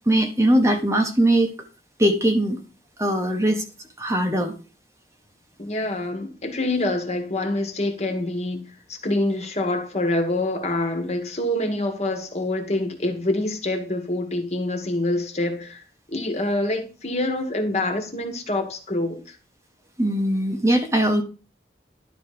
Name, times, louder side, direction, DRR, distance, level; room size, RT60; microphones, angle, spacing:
voice 1, 0.1-1.5 2.0-2.6 3.0-3.6 4.0-4.5 20.0-21.2, right 1 dB, 15° right, 1.2 m, -20 dB
voice 2, 5.6-8.6 8.9-15.8 16.1-19.4, left 1 dB, 40° left, 1.7 m, -26 dB
11.5 x 4.2 x 5.0 m
head